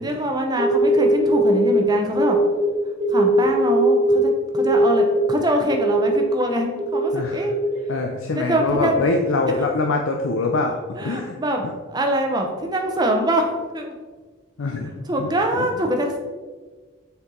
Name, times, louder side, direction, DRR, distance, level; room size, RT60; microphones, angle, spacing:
voice 1, 0.0-2.4 3.1-7.6 8.3-9.1 11.0-13.9 15.1-16.2, right 1 dB, 20° right, 2 dB, 0.7 m, -24 dB
sound 1, 0.6-2.7 3.0-4.2 4.5-6.2 6.8-7.8, equal, 40° right, 1.5 m, -19 dB
voice 2, 7.1-7.4 7.9-11.4 14.6-14.9 15.2-15.7, left 3 dB, 75° left, 2 dB, 0.5 m, -24 dB
6.7 x 4.6 x 3.7 m, 1.4 s
head